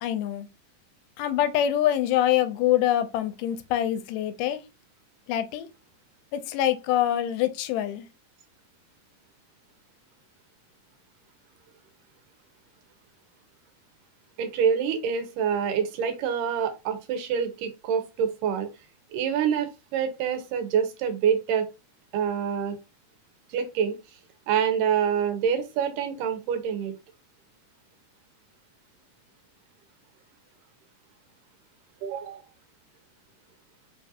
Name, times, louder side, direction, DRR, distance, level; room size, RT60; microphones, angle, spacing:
voice 1, 0.0-0.5 1.2-4.6 5.3-5.7 6.3-8.1, left 11 dB, 85° left, 2.1 m, -25 dB
voice 2, 14.4-18.7 19.1-21.6 22.1-22.8 23.5-24.0 24.5-26.9 32.0-32.4, right 7 dB, 85° right, 2.3 m, -26 dB
5.1 x 2.7 x 2.4 m
omnidirectional pair, 3.8 m